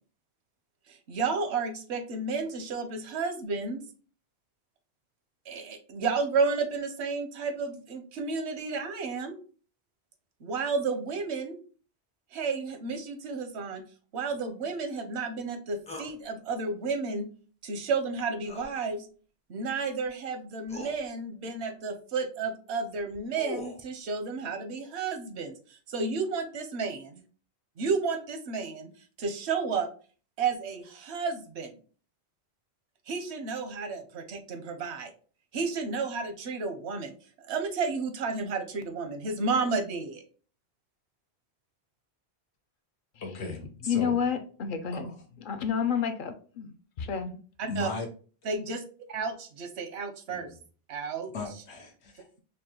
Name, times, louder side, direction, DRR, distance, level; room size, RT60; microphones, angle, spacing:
voice 1, 0.9-3.8 5.5-9.4 10.4-11.6 12.3-13.8 14.1-17.3 17.6-19.1 19.5-27.2 27.8-28.9 29.2-29.9 30.4-31.7 33.1-35.1 35.5-37.1 37.5-40.2 47.6-47.9 48.4-48.8 49.1-50.5 50.9-51.3, right 4 dB, 85° right, 1.0 m, -32 dB
sound 1, 15.9-16.1 18.4-18.7 20.0-20.1 20.7-21.0 23.0-23.8, left 2 dB, 10° left, 0.4 m, -40 dB
voice 2, 43.2-44.2 44.9-45.2 47.7-48.1 50.5-50.6 51.3-52.4, left 3 dB, 90° left, 1.2 m, -37 dB
voice 3, 43.9-45.1 45.4-47.4, left 7 dB, 60° left, 0.6 m, -30 dB
5.2 x 2.2 x 2.8 m
omnidirectional pair, 1.1 m